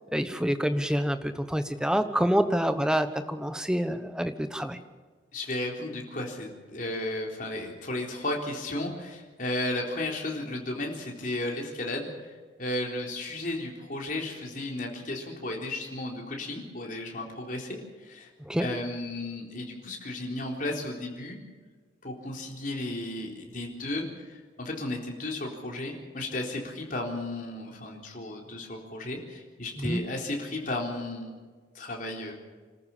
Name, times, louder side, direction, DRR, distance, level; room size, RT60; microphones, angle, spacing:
voice 1, 0.1-4.8 18.4-18.7 29.8-30.0, equal, 5° right, 9 dB, 1.0 m, -27 dB
voice 2, 5.3-12.1 12.6-17.8 18.0-18.3 18.6-21.4 22.0-31.3 31.7-32.3, left 2 dB, 45° left, 0 dB, 3.9 m, -34 dB
27.0 x 14.0 x 7.3 m, 1.5 s
head